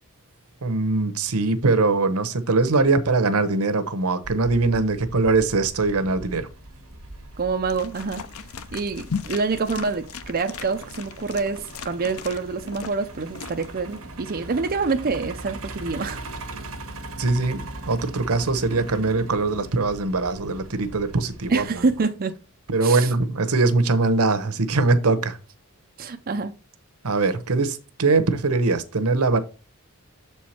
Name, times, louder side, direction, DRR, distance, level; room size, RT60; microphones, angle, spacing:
voice 1, 0.6-6.5 16.5-16.6 17.2-21.8 22.7-25.4 27.0-29.4, right 3 dB, 85° right, 0.9 m, -22 dB
Truck, 4.2-22.0, right 2 dB, 70° right, 1.4 m, -40 dB
voice 2, 7.4-8.3 8.7-16.2 21.5-22.3 22.8-23.1 26.0-26.5, right 4 dB, 45° right, 0.5 m, -26 dB
sound 1, 7.7-14.0, left 6 dB, 75° left, 0.6 m, -37 dB
7.0 x 4.6 x 4.3 m
head